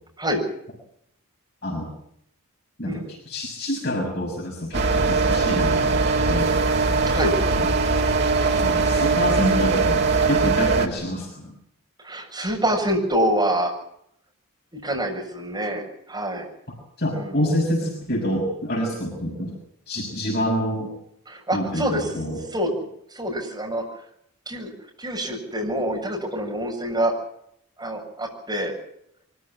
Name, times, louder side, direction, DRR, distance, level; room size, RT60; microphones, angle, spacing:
voice 1, 1.6-1.9 2.8-6.6 8.6-11.5 17.0-19.6 19.9-20.9 21.5-22.4, equal, 45° left, -1 dB, 6.3 m, -27 dB
sound 1, 4.7-10.9, right 4 dB, 50° right, 2.5 m, -21 dB
voice 2, 12.0-13.7 14.7-16.5 17.1-17.4 21.3-22.1 22.5-22.7 23.1-23.8 24.5-24.7 25.0-27.1 27.8-28.7, right 1 dB, 20° right, 0 dB, 7.2 m, -26 dB
24.0 x 15.0 x 9.9 m, 0.72 s
head